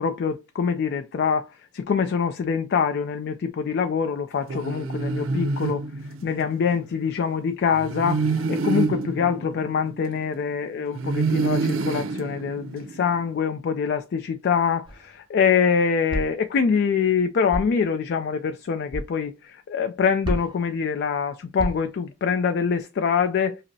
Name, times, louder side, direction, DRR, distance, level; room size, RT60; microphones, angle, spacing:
voice 1, 0.0-1.5 1.7-5.8 6.2-23.6, left 6 dB, 55° left, 0.3 m, -24 dB
sound 1, 4.5-6.6 7.7-10.4 10.9-13.2, right 4 dB, 75° right, 0.5 m, -27 dB
sound 2, 14.8-15.2 16.1-16.5 17.5-17.8 18.9-19.1 20.2-20.7 21.6-22.0, equal, 25° right, 0.7 m, -31 dB
5.2 x 2.0 x 2.6 m
head